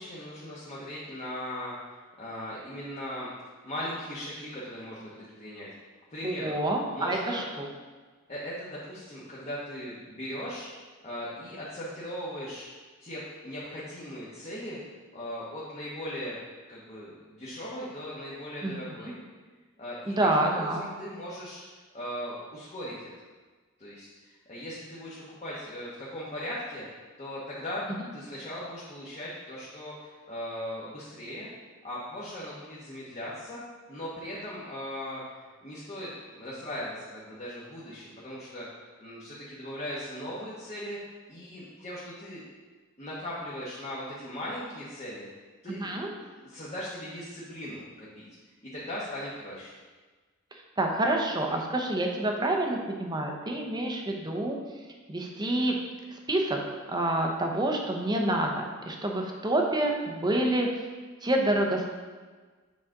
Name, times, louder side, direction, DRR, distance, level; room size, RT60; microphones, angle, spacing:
voice 1, 0.0-3.3 3.6-5.7 6.1-6.6 6.9-7.5 8.3-10.7 11.0-12.7 13.0-14.8 15.1-16.4 16.7-19.2 19.8-21.6 21.9-23.1 23.8-26.9 27.2-27.8 28.1-31.5 31.8-33.6 33.9-38.7 39.0-41.0 41.3-42.4 43.0-45.3 45.6-45.9 46.1-48.2 48.7-49.7, left 1 dB, 30° left, -7 dB, 1.1 m, -38 dB
voice 2, 6.2-7.7 18.6-18.7 20.1-20.8 45.7-46.1 50.8-54.6 55.1-55.8 56.3-56.6 56.9-60.7 61.2-61.8, right 1 dB, 20° right, 1 dB, 0.8 m, -27 dB
7.3 x 5.0 x 3.7 m, 1.4 s
head